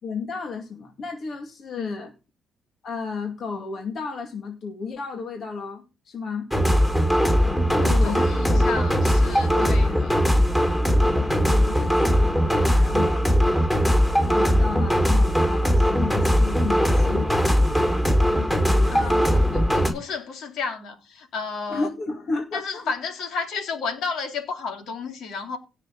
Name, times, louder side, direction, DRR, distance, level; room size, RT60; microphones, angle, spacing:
voice 1, 0.0-2.1 2.8-6.5 7.8-8.2 8.5-8.6 9.5-10.0 11.5-13.2 14.2-17.3 17.6-17.9 18.7-19.5 21.7-22.9, left 4 dB, 55° left, 2.4 m, -33 dB
sound 1, 6.5-19.9, equal, 10° left, 5.3 m, -20 dB
voice 2, 7.6-10.2 18.9-21.9 22.5-25.6, left 5 dB, 80° left, 3.6 m, -32 dB
17.5 x 6.7 x 4.2 m
cardioid pair, 90°, 0 cm